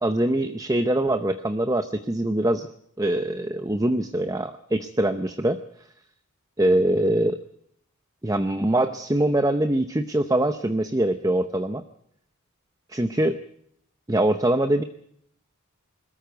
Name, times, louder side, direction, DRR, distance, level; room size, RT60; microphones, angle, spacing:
voice 1, 0.0-2.7 3.0-5.6 6.6-7.4 8.2-11.8 12.9-13.4 14.1-14.8, right 1 dB, 15° right, 9 dB, 0.7 m, -23 dB
21.5 x 13.5 x 9.2 m, 0.70 s
head